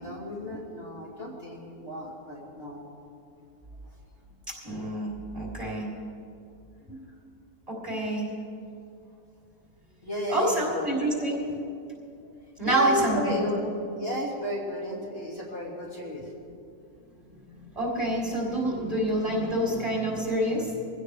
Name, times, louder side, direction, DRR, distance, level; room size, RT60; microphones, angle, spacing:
voice 1, 0.0-2.8 10.0-11.3 12.6-13.7 14.0-16.2, right 1 dB, 35° left, -5 dB, 2.8 m, -31 dB
voice 2, 4.6-5.9 6.9-7.0 7.7-8.3 10.3-11.5 12.6-13.4 17.8-20.7, right 1 dB, 20° right, -4 dB, 3.6 m, -28 dB
24.0 x 16.5 x 3.4 m, 2.5 s
omnidirectional pair, 1.7 m